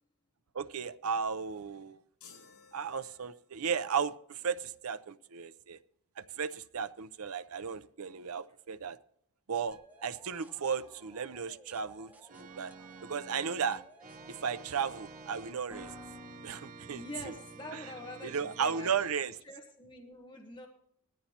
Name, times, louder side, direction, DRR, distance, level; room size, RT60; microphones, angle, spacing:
voice 1, 0.5-2.0 2.7-5.8 6.2-9.0 9.5-12.7 13.0-13.8 14.3-16.0 16.4-17.0 17.7-17.8 18.2-19.3, right 6 dB, 70° right, 0.6 m, -35 dB
sound 1, 2.2-3.8, left 6 dB, 85° left, 6.7 m, -57 dB
sound 2, 9.7-17.5, left 1 dB, 5° right, 1.2 m, -56 dB
Organ, 12.3-19.1, right 4 dB, 40° right, 0.9 m, -50 dB
voice 2, 16.8-18.9 19.4-20.7, left 1 dB, 20° left, 1.1 m, -45 dB
19.5 x 14.0 x 2.9 m
head